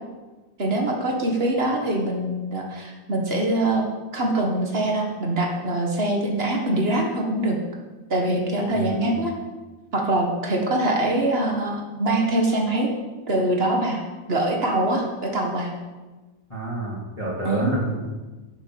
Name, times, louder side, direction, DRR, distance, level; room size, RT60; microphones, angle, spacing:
voice 1, 0.6-3.8 4.1-7.6 8.1-9.3 9.9-12.9 13.3-14.0 14.3-15.7 17.4-17.7, right 1 dB, 35° right, 1 dB, 0.9 m, -23 dB
voice 2, 8.7-9.2 16.5-18.1, right 2 dB, 10° left, -6 dB, 2.2 m, -29 dB
11.0 x 6.7 x 7.7 m, 1.2 s
omnidirectional pair, 3.4 m